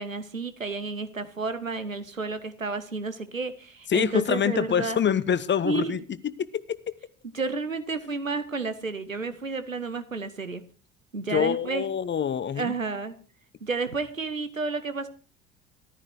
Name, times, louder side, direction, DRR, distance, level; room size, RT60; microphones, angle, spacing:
voice 1, 0.0-5.0 5.6-6.0 7.2-10.6 11.1-11.8 12.6-13.2 13.6-15.1, right 4 dB, 90° right, 12 dB, 1.0 m, -31 dB
voice 2, 3.9-6.0 6.4-6.8 11.3-12.7, left 8 dB, 30° left, 16 dB, 1.0 m, -25 dB
14.5 x 13.0 x 4.6 m, 0.37 s
figure-of-eight pair, 60°, 39 cm